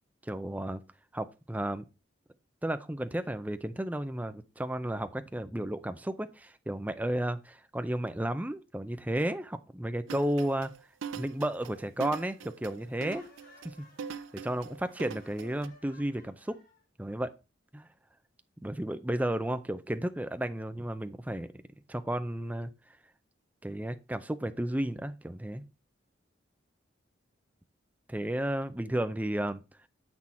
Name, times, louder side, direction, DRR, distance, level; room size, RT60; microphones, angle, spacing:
voice 1, 0.2-0.8 1.1-1.8 2.6-10.7 11.1-13.2 13.6-13.9 14.4-16.6 17.0-17.3 17.7-17.9 18.6-21.5 21.9-22.7 23.6-25.6 28.1-29.6, right 1 dB, 10° right, 0.5 m, -33 dB
sound 1, 10.1-15.7, right 6 dB, 85° right, 0.5 m, -42 dB
Laughter, 12.8-16.8, left 2 dB, 45° left, 2.4 m, -59 dB
7.4 x 6.2 x 4.2 m
head